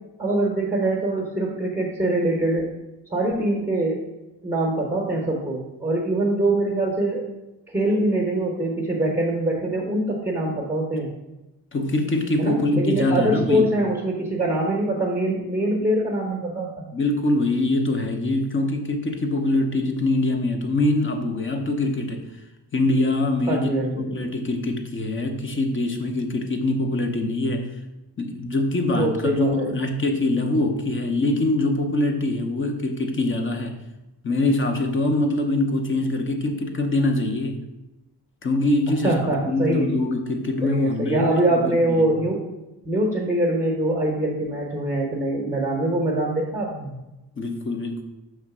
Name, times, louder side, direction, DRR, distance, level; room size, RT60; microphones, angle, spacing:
voice 1, 0.2-2.7 3.1-4.0 4.4-7.3 7.7-11.1 12.4-16.9 23.5-24.1 28.9-29.8 39.0-39.9 40.6-42.4 42.8-46.9, right 1 dB, 10° right, -2 dB, 0.9 m, -23 dB
voice 2, 11.7-13.7 16.9-22.3 22.7-27.7 28.2-33.8 34.2-37.6 38.4-42.0 47.4-48.0, left 2 dB, 30° left, 5 dB, 0.7 m, -23 dB
6.3 x 3.3 x 5.9 m, 1.0 s
wide cardioid pair, 170°, 40 cm